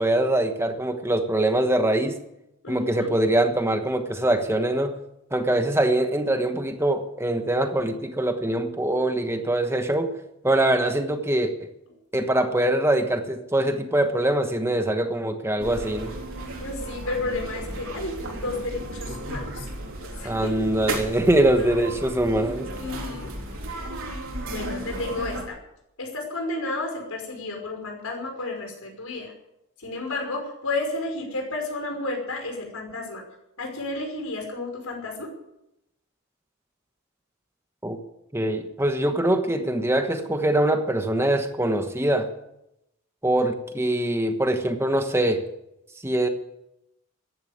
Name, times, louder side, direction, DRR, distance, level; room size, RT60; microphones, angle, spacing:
voice 1, 0.0-2.2 2.7-4.9 5.3-10.1 10.4-11.7 12.1-16.1 20.2-22.7 37.8-38.0 38.3-42.3 43.2-45.4 46.0-46.3, right 1 dB, 10° right, 7 dB, 1.2 m, -23 dB
voice 2, 2.6-3.1 16.6-19.7 20.2-20.5 21.6-21.7 22.8-23.3 23.7-23.8 24.4-25.6 26.0-29.3 29.8-33.2 33.6-35.3, left 2 dB, 90° left, 2 dB, 5.5 m, -32 dB
sound 1, 15.6-25.4, right 1 dB, 70° right, 3.9 m, -34 dB
14.5 x 10.5 x 8.8 m, 0.84 s
head